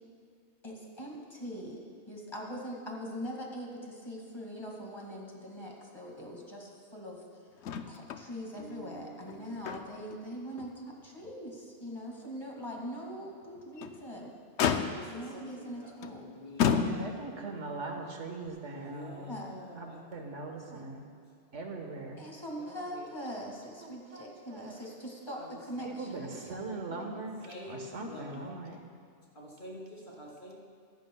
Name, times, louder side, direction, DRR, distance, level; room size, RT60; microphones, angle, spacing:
voice 1, 0.6-1.8 2.1-7.4 7.9-10.7 11.0-14.3 15.1-16.2 18.7-18.8 19.1-19.6 22.2-26.4, equal, 20° left, -2 dB, 2.2 m, -42 dB
Motor vehicle (road), 7.6-8.3 8.6-8.7 9.2-10.1 10.6-10.7 11.2-11.3 13.6-14.0 14.6-15.3 16.0-16.2 16.6-17.4 18.5-18.6, left 7 dB, 80° left, 0.9 m, -31 dB
voice 2, 8.5-9.8 14.9-17.0 18.7-20.0 22.6-23.1 25.4-26.1 27.5-28.6 29.3-30.5, equal, 45° left, -5 dB, 3.3 m, -48 dB
voice 3, 16.6-19.4 19.8-21.0 21.5-22.2 23.8-24.8 25.8-28.9, right 3 dB, 90° right, 2 dB, 1.7 m, -41 dB
24.5 x 11.0 x 2.3 m, 2.3 s
omnidirectional pair, 1.2 m